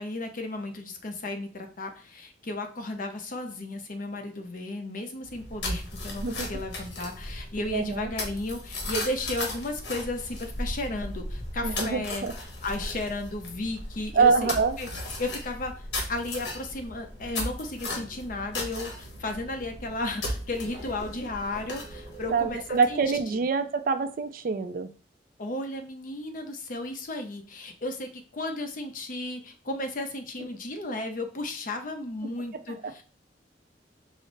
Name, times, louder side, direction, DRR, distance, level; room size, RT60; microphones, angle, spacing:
voice 1, 0.0-12.3 12.6-14.5 14.8-14.9 15.2-15.8 16.1-23.0 23.3-23.4 25.4-33.0, left 2 dB, 50° left, 5 dB, 0.7 m, -34 dB
sound 1, 5.2-23.2, left 1 dB, 80° left, 1.1 m, -36 dB
voice 2, 6.2-6.5 7.7-8.1 11.6-12.3 14.1-14.8 22.3-24.9, right 5 dB, 55° right, 10 dB, 0.4 m, -25 dB
5.0 x 2.0 x 3.9 m, 0.39 s
head